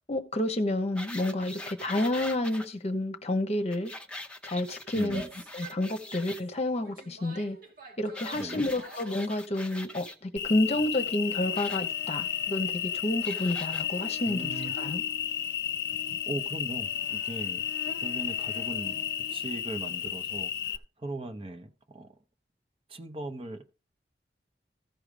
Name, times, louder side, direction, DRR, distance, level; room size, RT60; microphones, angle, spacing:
voice 1, 0.1-3.9 4.4-5.2 5.5-7.6 8.0-15.0, left 1 dB, 40° left, 1.1 m, -30 dB
sound 1, 1.0-2.7 3.7-6.4 8.1-10.2 11.5-11.8 13.2-13.8 14.5-14.6, left 1 dB, 5° left, 0.8 m, -42 dB
voice 2, 4.9-5.3 8.3-8.7 14.3-14.7 16.3-17.7 18.0-19.0 19.3-22.1 22.9-23.8, right 2 dB, 30° right, 0.8 m, -39 dB
Female speech woman speaking / Yell, 5.0-9.3, right 5 dB, 55° right, 2.0 m, -48 dB
Cricket, 10.4-20.8, left 9 dB, 60° left, 0.6 m, -32 dB
14.5 x 4.9 x 5.1 m
head